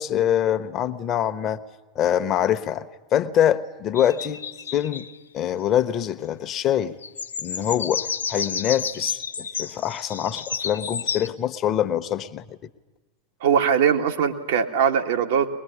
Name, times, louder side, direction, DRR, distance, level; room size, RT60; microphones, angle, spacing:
voice 1, 0.0-1.6 1.9-2.9 3.1-4.4 4.7-5.1 5.3-6.9 7.4-12.7, left 10 dB, 35° left, 9 dB, 1.2 m, -24 dB
sound 1, 3.9-5.2 7.0-11.3, left 6 dB, 80° left, 0.7 m, -31 dB
voice 2, 13.4-15.5, right 7 dB, 60° right, 4 dB, 2.0 m, -21 dB
22.5 x 21.0 x 9.9 m, 1.2 s
figure-of-eight pair, 85°, 0 cm